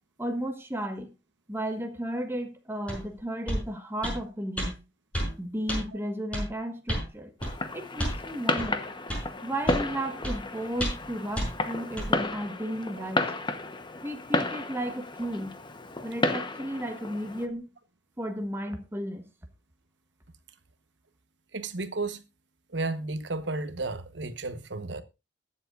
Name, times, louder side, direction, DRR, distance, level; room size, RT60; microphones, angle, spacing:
voice 1, 0.2-1.1 1.5-4.8 5.4-7.3 7.7-8.9 9.4-13.3 14.0-15.5 16.0-17.7 18.2-19.3, right 1 dB, 15° right, 1.3 m, -34 dB
sound 1, 2.9-3.0 3.5-3.6 4.0-4.2 4.6-4.7 5.1-5.3 5.7-5.8 6.3-6.5 6.9-7.1 7.4-7.5 8.0-8.2 8.6-8.7 9.1-9.2 9.7-9.9 10.2-10.4 10.8-11.1 11.4-11.5 12.0-12.1, equal, 5° left, 5.9 m, -30 dB
Fireworks, 7.4-17.5, left 2 dB, 25° left, 1.0 m, -32 dB
voice 2, 21.5-22.2 22.7-25.0, right 3 dB, 70° right, 1.1 m, -33 dB
22.0 x 7.5 x 2.5 m
head